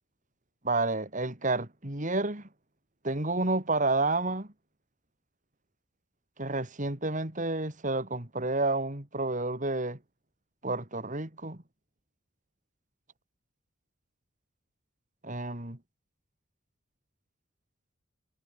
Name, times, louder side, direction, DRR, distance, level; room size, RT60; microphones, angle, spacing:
voice 1, 0.6-2.5 3.0-4.5 6.4-10.0 10.6-11.6 15.2-15.8, right 2 dB, 40° right, 3.1 m, -30 dB
head